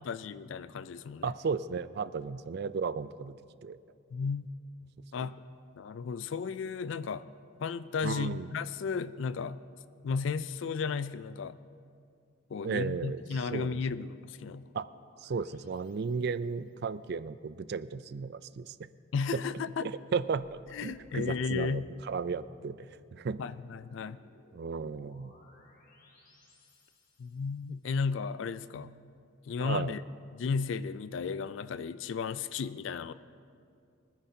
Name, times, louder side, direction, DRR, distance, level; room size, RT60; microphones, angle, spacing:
voice 1, 0.0-1.3 4.1-4.5 5.1-5.4 5.8-7.3 7.6-9.6 10.0-11.6 12.5-14.7 19.1-19.9 20.7-21.9 23.4-24.2 27.2-28.9 29.5-30.0 30.3-33.1, left 5 dB, 70° left, 15 dB, 0.3 m, -34 dB
voice 2, 1.2-3.4 3.6-3.8 5.2-5.3 8.0-8.5 12.6-14.0 14.7-14.9 15.2-18.8 19.8-23.4 24.5-25.3 29.6-29.9, right 5 dB, 55° right, 14 dB, 0.4 m, -35 dB
sound 1, 13.6-16.7 20.1-27.7, left 1 dB, 45° left, 1.4 m, -62 dB
23.5 x 9.9 x 2.8 m, 2.4 s
head